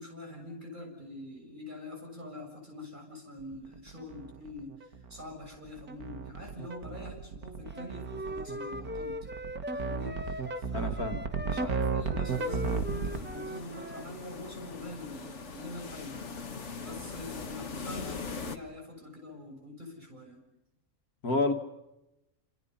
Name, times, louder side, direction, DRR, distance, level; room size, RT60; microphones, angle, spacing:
voice 1, 0.0-9.3 9.7-16.2 16.7-20.4, left 1 dB, 30° right, 1 dB, 7.2 m, -45 dB
sound 1, 3.4-13.2, right 5 dB, 85° right, 2.1 m, -34 dB
Wind instrument woodwind instrument, 7.7-14.1, equal, 10° right, 0.5 m, -39 dB
voice 2, 10.7-11.2 11.6-11.7 21.2-21.5, left 3 dB, 80° left, 5 dB, 2.4 m, -29 dB
sound 2, 12.3-18.6, left 4 dB, 55° left, 1.8 m, -41 dB
28.5 x 27.0 x 5.6 m, 0.95 s
omnidirectional pair, 1.6 m